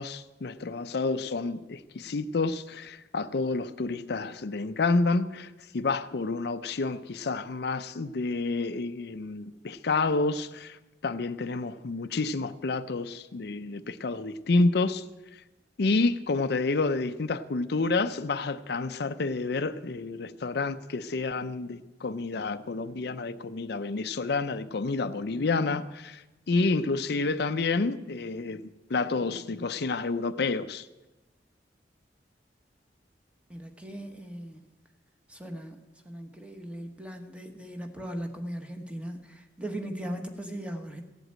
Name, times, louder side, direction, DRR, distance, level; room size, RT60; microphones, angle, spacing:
voice 1, 0.0-15.0 15.3-15.4 15.8-28.6 28.9-30.9, left 3 dB, 65° left, 0.5 m, -29 dB
voice 2, 33.5-34.6 35.3-35.8 36.0-41.0, right 1 dB, 5° right, 1.3 m, -38 dB
15.5 x 8.0 x 8.8 m
head